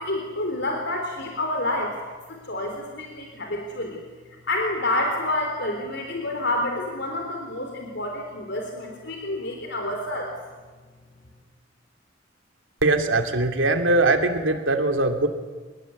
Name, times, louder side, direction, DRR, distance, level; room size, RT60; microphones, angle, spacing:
voice 1, 0.0-2.0 2.3-4.0 4.5-10.3, left 1 dB, 60° left, 3 dB, 3.8 m, -28 dB
voice 2, 12.8-15.3, right 2 dB, 85° right, 6 dB, 2.8 m, -21 dB
26.0 x 20.5 x 9.6 m, 1.4 s
head